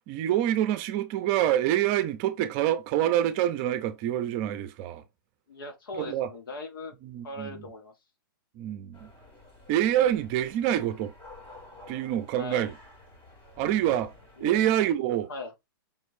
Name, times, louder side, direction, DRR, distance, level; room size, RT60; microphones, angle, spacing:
voice 1, 0.0-5.0 5.9-6.3 7.0-7.7 8.6-9.1 9.7-11.1 11.9-12.7 13.6-14.1 14.4-15.3, right 12 dB, 35° right, 0.6 m, -26 dB
voice 2, 5.5-6.9 7.2-7.9 12.4-12.7 14.4-14.6 15.3-15.5, left 2 dB, 70° left, 1.4 m, -39 dB
sound 1, 8.9-14.9, left 1 dB, 25° left, 1.8 m, -51 dB
5.3 x 3.1 x 2.6 m
hypercardioid pair, 140°, 12 cm